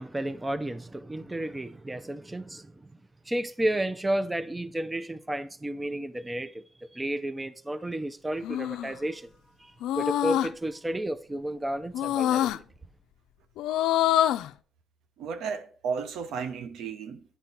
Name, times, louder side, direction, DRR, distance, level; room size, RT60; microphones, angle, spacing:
voice 1, 0.0-2.7 3.3-6.6 6.9-9.3 9.6-12.6, right 1 dB, 15° right, 0.5 m, -32 dB
sound 1, 8.4-8.9 9.8-10.5 11.9-12.6 13.6-14.5, left 12 dB, 90° left, 0.3 m, -25 dB
voice 2, 15.2-17.2, right 6 dB, 85° right, 0.9 m, -33 dB
10.0 x 4.4 x 5.2 m
cardioid pair, 90°, 0 cm